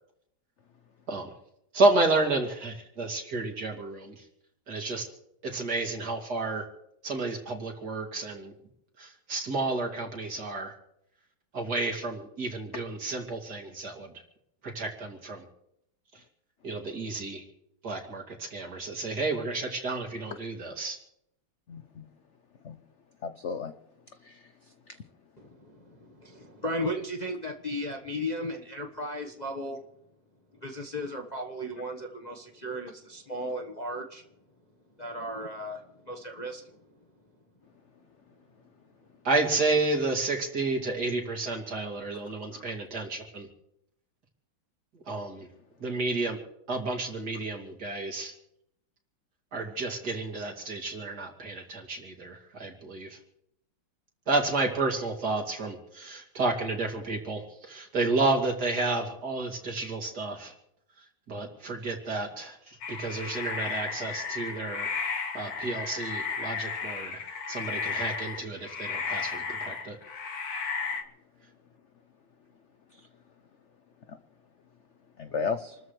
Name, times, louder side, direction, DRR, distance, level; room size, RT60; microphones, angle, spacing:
voice 1, 1.7-4.2 4.7-5.1 5.4-6.6 7.0-8.5 9.0-10.7 11.5-14.1 14.6-15.4 16.6-17.4 17.8-21.0 39.2-43.5 45.1-45.5 45.8-46.4 46.7-48.3 49.5-53.2 54.3-60.5 61.3-64.9 65.3-67.2 67.5-70.0, right 3 dB, 50° right, 1 dB, 3.2 m, -31 dB
voice 2, 21.7-22.1 22.6-22.8 23.2-23.7 24.2-24.5 24.9-25.0 42.5-42.6 72.9-73.1 74.1-74.2 75.2-75.8, left 5 dB, 70° left, 9 dB, 0.6 m, -34 dB
voice 3, 25.4-29.8 30.5-34.2 35.0-36.8, equal, 25° left, 2 dB, 1.1 m, -36 dB
sound 1, 62.8-71.0, left 5 dB, 50° left, 1.6 m, -34 dB
28.0 x 13.5 x 3.3 m, 0.77 s
omnidirectional pair, 2.2 m